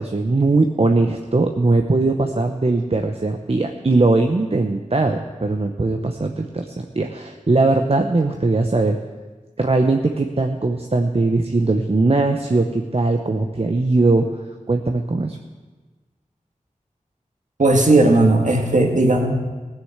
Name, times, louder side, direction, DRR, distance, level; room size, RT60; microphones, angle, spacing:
voice 1, 0.0-9.0 9.6-14.3 14.7-15.4, right 3 dB, 45° right, 4 dB, 0.8 m, -20 dB
voice 2, 17.6-19.3, right 2 dB, 65° right, 2 dB, 1.9 m, -16 dB
16.0 x 6.6 x 8.0 m, 1.3 s
wide cardioid pair, 50°, 14 cm